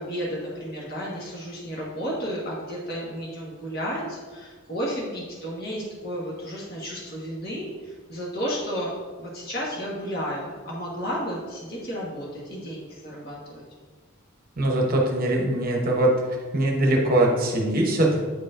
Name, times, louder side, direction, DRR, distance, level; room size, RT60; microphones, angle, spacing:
voice 1, 0.0-8.9 9.2-13.6, equal, 50° left, -4 dB, 1.5 m, -32 dB
voice 2, 14.6-16.2 16.5-18.2, right 1 dB, 45° right, 0 dB, 0.9 m, -21 dB
9.2 x 4.7 x 2.5 m, 1.4 s
head